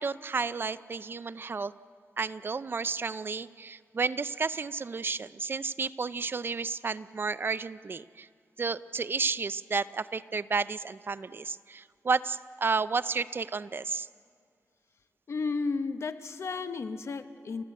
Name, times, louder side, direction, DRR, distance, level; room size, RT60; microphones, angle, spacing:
voice 1, 0.0-1.7 2.2-8.3 8.6-14.1, right 4 dB, 45° right, 15 dB, 0.5 m, -32 dB
voice 2, 15.3-17.6, left 4 dB, 60° left, 10 dB, 1.1 m, -33 dB
29.5 x 14.5 x 8.4 m, 2.2 s
wide cardioid pair, 90°, 5 cm